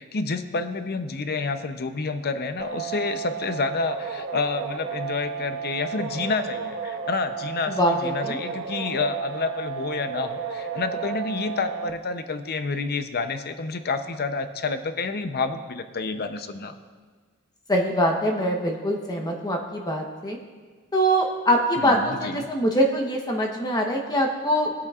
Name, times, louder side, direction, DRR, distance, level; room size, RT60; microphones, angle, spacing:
voice 1, 0.0-16.8 21.8-22.5, left 4 dB, 45° left, 9 dB, 0.7 m, -29 dB
sound 1, 2.6-11.9, right 6 dB, 65° right, 0.8 m, -33 dB
voice 2, 7.7-8.4 17.7-20.4 20.9-24.9, equal, 20° left, 1 dB, 1.0 m, -23 dB
20.0 x 8.3 x 2.4 m, 1.5 s
head